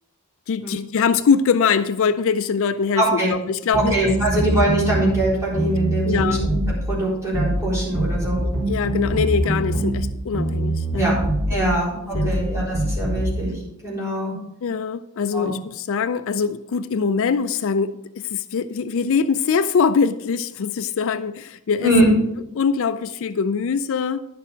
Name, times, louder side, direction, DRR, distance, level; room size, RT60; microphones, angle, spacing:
voice 1, 0.5-4.4 6.1-6.5 8.4-11.2 11.5-11.9 12.1-12.3 14.6-21.9 22.5-24.2, left 6 dB, 60° left, 12 dB, 0.4 m, -23 dB
voice 2, 3.0-3.3 3.7-6.6 6.9-8.4 11.0-11.2 11.5-14.3 15.3-15.5 21.7-22.1, right 1 dB, 15° right, -7 dB, 4.2 m, -22 dB
sound 1, 3.7-5.3 5.5-6.8 7.3-7.6 7.9-10.1 10.3-11.6 12.1-12.4 12.7-13.3, right 1 dB, 60° right, 3.1 m, -23 dB
10.5 x 6.8 x 5.1 m, 0.85 s
head